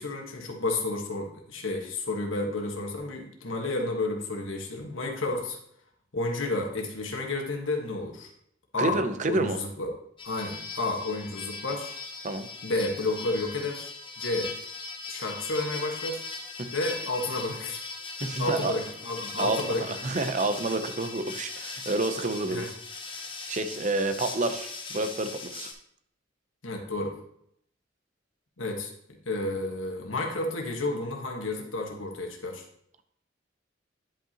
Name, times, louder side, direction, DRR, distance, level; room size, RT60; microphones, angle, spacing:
voice 1, 0.0-5.6 6.1-8.3 8.7-9.0 9.3-9.9 10.2-11.9 12.6-14.5 15.1-16.2 16.7-17.8 18.4-19.8 22.5-22.7 26.6-27.1 28.6-28.9 29.2-32.6, left 2 dB, 90° left, 2 dB, 1.4 m, -31 dB
voice 2, 8.8-9.6 12.2-12.5 16.6-16.7 18.2-18.7 19.4-22.7 23.5-25.7, right 2 dB, 40° right, 9 dB, 0.6 m, -29 dB
sound 1, 10.2-25.7, left 4 dB, 25° left, 0.9 m, -39 dB
10.0 x 5.4 x 2.9 m, 0.71 s
head